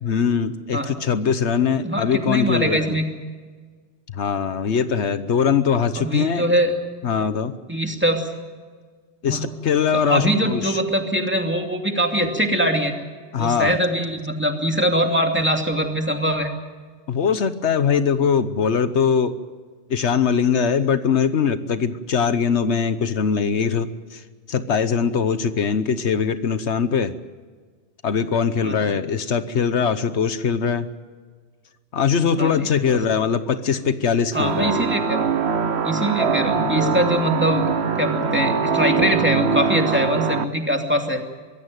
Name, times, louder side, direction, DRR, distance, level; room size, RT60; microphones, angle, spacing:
voice 1, 0.0-3.0 4.1-6.5 7.0-7.5 9.2-10.8 13.3-13.8 17.1-19.4 19.9-24.2 24.5-27.1 28.0-30.9 31.9-34.9, left 6 dB, 80° left, 12 dB, 1.3 m, -21 dB
voice 2, 1.8-3.0 5.9-6.7 7.7-8.3 9.3-9.4 9.9-12.9 13.4-16.5 28.6-28.9 32.4-33.0 34.3-35.3 35.8-37.7 38.0-41.2, equal, 10° right, 3 dB, 2.5 m, -22 dB
sound 1, 34.3-40.4, right 6 dB, 70° right, 1.3 m, -22 dB
23.5 x 16.0 x 9.3 m, 1.5 s
omnidirectional pair, 1.1 m